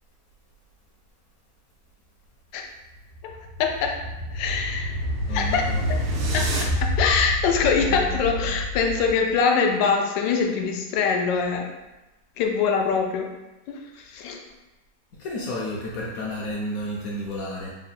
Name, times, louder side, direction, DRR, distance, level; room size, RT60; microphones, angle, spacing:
sound 1, 2.9-9.3, left 1 dB, 85° right, 1.4 m, -28 dB
voice 1, 3.6-3.9 4.3-4.9 5.3-5.7 6.3-6.5 7.0-11.7 12.4-13.3 13.7-14.4, left 5 dB, 90° left, 2 dB, 1.3 m, -23 dB
voice 2, 5.3-5.8 7.7-8.1 8.5-8.6 15.2-17.7, left 1 dB, 70° left, -4 dB, 0.9 m, -32 dB
3.6 x 2.1 x 4.0 m, 1.0 s
omnidirectional pair, 1.9 m